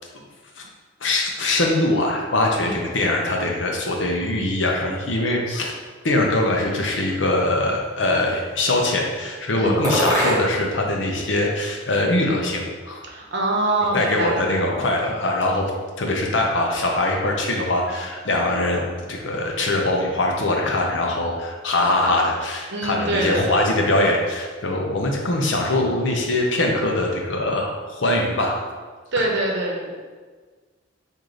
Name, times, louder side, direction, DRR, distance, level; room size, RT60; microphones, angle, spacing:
voice 1, 1.0-5.7 6.0-13.0 13.9-15.6 16.0-28.6, left 2 dB, 70° left, 0 dB, 0.7 m, -22 dB
sound 1, 6.6-7.6 8.3-8.9 9.8-10.8 11.1-12.1, equal, 20° right, 1.5 m, -27 dB
voice 2, 13.1-14.6 22.7-23.7 29.1-29.9, right 2 dB, 60° right, -1 dB, 0.8 m, -24 dB
4.8 x 2.7 x 3.8 m, 1.4 s
head